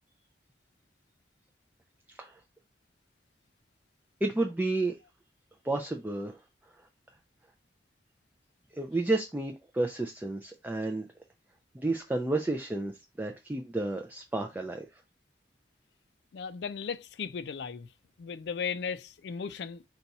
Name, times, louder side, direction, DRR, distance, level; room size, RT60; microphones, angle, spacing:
voice 1, 2.1-2.4 4.2-5.0 5.6-6.4 8.7-11.1 11.7-14.9, right 2 dB, 10° right, 0.3 m, -31 dB
voice 2, 16.3-17.9 18.2-19.9, left 6 dB, 65° left, 0.4 m, -36 dB
4.0 x 2.3 x 4.0 m
head